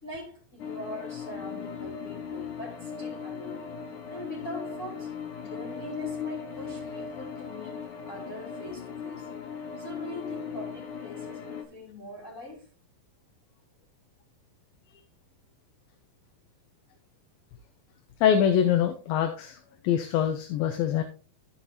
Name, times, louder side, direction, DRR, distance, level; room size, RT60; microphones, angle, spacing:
voice 1, 0.0-3.7 4.1-5.1 5.4-9.3 9.8-12.7, equal, 20° left, 3.3 m, -42 dB
sound 1, 0.6-11.6, left 6 dB, 65° left, 2.4 m, -38 dB
voice 2, 18.2-19.6 19.8-21.0, left 9 dB, 90° left, 2.7 m, -24 dB
15.0 x 5.9 x 2.9 m
omnidirectional pair, 4.1 m